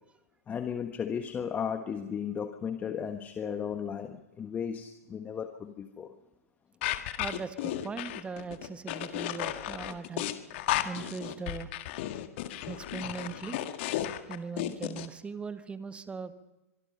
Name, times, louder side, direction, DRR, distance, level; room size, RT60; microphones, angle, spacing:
voice 1, 0.5-6.1, left 7 dB, 20° left, 7 dB, 1.3 m, -35 dB
sound 1, 6.8-15.1, left 13 dB, 50° left, 1.7 m, -34 dB
voice 2, 7.2-10.3 10.8-11.7 12.6-13.6 14.3-16.3, right 5 dB, 15° right, 11 dB, 1.4 m, -39 dB
25.0 x 23.0 x 5.6 m, 1.0 s
figure-of-eight pair, 105°, 8 cm